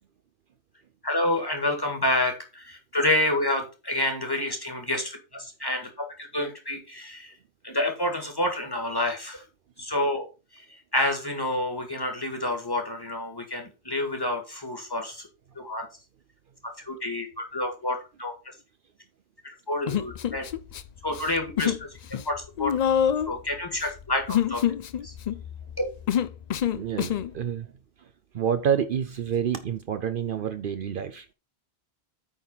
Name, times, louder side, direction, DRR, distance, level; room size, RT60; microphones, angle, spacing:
voice 1, 1.0-7.3 7.6-9.4 9.8-10.2 10.5-15.3 15.6-15.9 16.8-18.3 19.4-20.5 21.0-22.0 22.3-22.7 23.3-24.6 25.0-25.1 25.8-25.9, left 1 dB, 20° left, 1.8 m, -28 dB
Human voice, 19.9-20.8 21.1-21.8 22.1-27.3, left 9 dB, 55° left, 0.5 m, -26 dB
voice 2, 26.7-27.7 28.3-31.3, right 8 dB, 60° right, 0.7 m, -28 dB
8.8 x 4.1 x 5.4 m
omnidirectional pair, 1.1 m